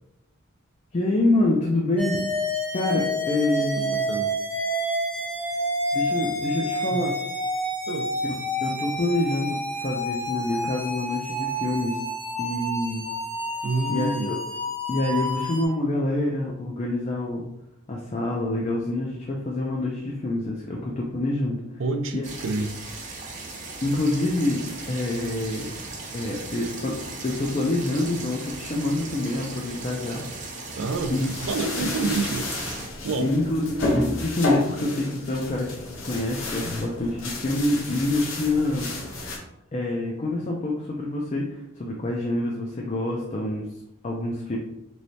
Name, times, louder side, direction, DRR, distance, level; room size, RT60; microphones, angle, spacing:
voice 1, 0.9-2.2 2.7-4.2 5.9-7.1 8.6-12.0 12.4-13.0 13.9-14.4 14.9-17.4 17.9-21.6 22.1-22.2 23.8-25.7 26.1-27.0 27.2-30.2 31.1-31.3 33.2-35.7 36.0-38.9 39.7-43.7 44.0-44.6, left 2 dB, 35° left, -2 dB, 0.4 m, -26 dB
sound 1, 2.0-15.7, equal, 5° left, 0.7 m, -29 dB
voice 2, 3.6-4.3 6.9-7.0 7.9-8.1 13.6-14.3 21.8-22.7 30.8-33.4, right 3 dB, 75° right, 8 dB, 0.4 m, -29 dB
sound 2, 22.2-32.9, right 3 dB, 40° right, 0.7 m, -37 dB
sound 3, 30.9-39.4, left 2 dB, 80° left, 0.8 m, -31 dB
3.1 x 3.1 x 2.7 m, 0.83 s
head